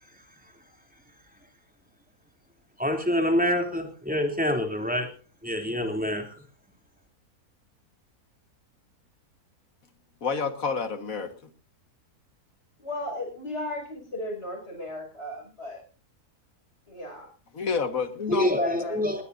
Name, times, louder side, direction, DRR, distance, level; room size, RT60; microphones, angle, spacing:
voice 1, 2.8-5.1 5.4-6.4 18.3-19.2, left 1 dB, 5° right, 3 dB, 3.1 m, -26 dB
voice 2, 10.2-11.5 17.5-18.6, left 5 dB, 65° left, 9 dB, 2.0 m, -29 dB
voice 3, 12.8-15.8 16.9-17.3 18.8-19.0, left 1 dB, 45° left, 2 dB, 6.4 m, -35 dB
20.5 x 20.0 x 2.7 m, 0.36 s
omnidirectional pair, 1.6 m